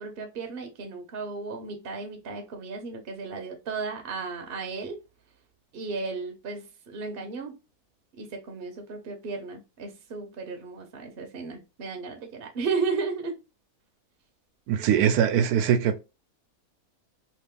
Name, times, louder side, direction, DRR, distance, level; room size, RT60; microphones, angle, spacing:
voice 1, 0.0-5.0 5.7-7.6 8.2-13.4, right 4 dB, 50° right, 0.8 m, -34 dB
voice 2, 14.7-16.0, right 8 dB, 90° right, 1.1 m, -22 dB
2.9 x 2.6 x 3.6 m
omnidirectional pair, 1.6 m